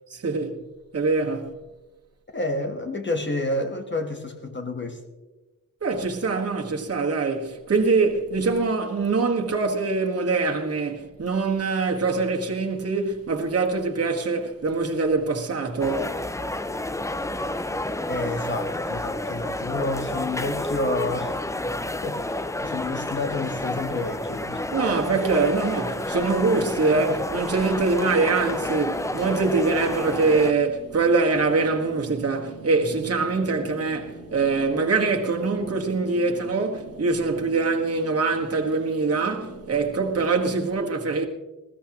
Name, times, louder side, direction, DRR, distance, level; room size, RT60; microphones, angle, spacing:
voice 1, 0.1-0.6 0.9-1.5 5.8-16.1 21.7-21.8 24.7-41.3, right 4 dB, 45° right, 1.5 m, -24 dB
voice 2, 2.3-5.0 18.1-21.4 22.0-24.6 26.9-27.2, left 2 dB, 35° left, 1.2 m, -29 dB
sound 1, 15.8-30.5, left 1 dB, 10° left, 0.4 m, -30 dB
sound 2, 28.0-40.7, right 2 dB, 50° left, 5.1 m, -43 dB
20.5 x 15.5 x 2.9 m
wide cardioid pair, 155°, 33 cm